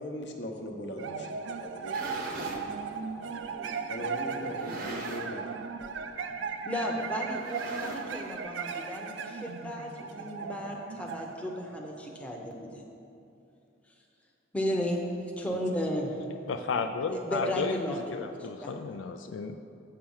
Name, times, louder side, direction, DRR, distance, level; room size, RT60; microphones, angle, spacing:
voice 1, 0.0-2.2 3.9-5.4 15.4-15.6 16.6-16.7, left 1 dB, 60° left, 2 dB, 0.9 m, -39 dB
sound 1, 1.0-12.5, right 5 dB, 75° right, 0.4 m, -37 dB
sound 2, 1.7-2.7 3.4-3.5 4.4-5.4 5.7-6.0 6.3-6.4 7.3-8.4, right 2 dB, 50° right, 0.9 m, -41 dB
voice 2, 6.6-12.8 14.5-16.2 17.1-18.7, equal, 5° left, -1 dB, 0.7 m, -34 dB
voice 3, 16.5-17.8 18.1-19.6, left 5 dB, 80° left, 6 dB, 0.4 m, -33 dB
7.6 x 4.7 x 7.1 m, 2.7 s
head